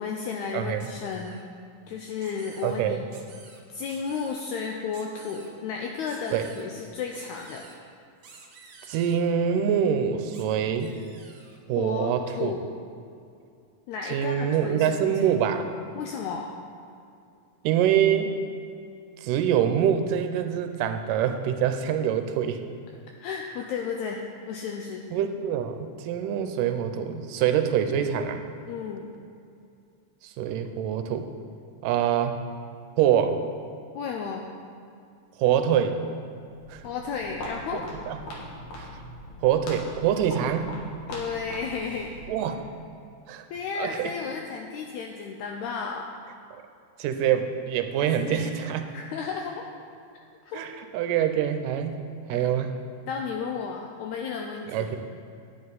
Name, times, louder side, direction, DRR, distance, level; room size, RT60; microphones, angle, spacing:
voice 1, 0.0-1.4 1.9-3.1 3.7-7.6 11.8-12.6 13.9-15.2 15.9-16.6 23.2-25.0 28.7-29.1 33.9-34.5 36.8-37.9 41.1-42.1 43.5-46.1 48.0-48.5 48.9-49.7 50.5-50.7 52.3-52.6 53.1-54.9, left 5 dB, 80° left, 1 dB, 1.7 m, -33 dB
voice 2, 0.5-0.9 2.6-3.0 6.3-6.5 8.9-11.0 11.7-12.6 14.1-15.8 17.6-18.3 19.2-22.6 25.1-28.4 30.2-31.3 31.8-32.4 33.0-33.4 35.4-36.0 36.7-36.8 37.7-38.2 38.8-38.9 39.4-40.8 42.3-42.6 43.3-43.4 43.8-44.1 47.0-48.8 50.5-52.0 52.3-52.7 54.7-55.0, right 9 dB, 85° right, 7 dB, 2.2 m, -25 dB
sound 1, 0.8-1.4 2.2-2.7 3.1-3.6 3.9-4.4 4.9-5.5 6.1-6.7 7.1-7.8 8.2-9.2 10.3-10.4 10.8-11.6, right 4 dB, 65° right, 1.4 m, -50 dB
Walk footsteps, 36.5-42.5, equal, 65° left, 2.8 m, -41 dB
10.0 x 9.5 x 4.0 m, 2.5 s
omnidirectional pair, 3.8 m